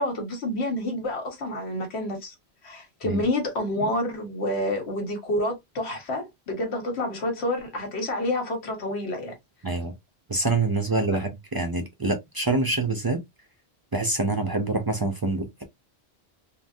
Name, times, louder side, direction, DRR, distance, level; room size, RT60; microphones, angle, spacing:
voice 1, 0.0-2.3 2.6-9.3, left 1 dB, 80° left, 1.3 m, -28 dB
voice 2, 9.6-9.9 10.3-13.2 13.9-15.6, right 2 dB, 35° right, 0.3 m, -26 dB
3.4 x 2.1 x 2.5 m
omnidirectional pair, 1.1 m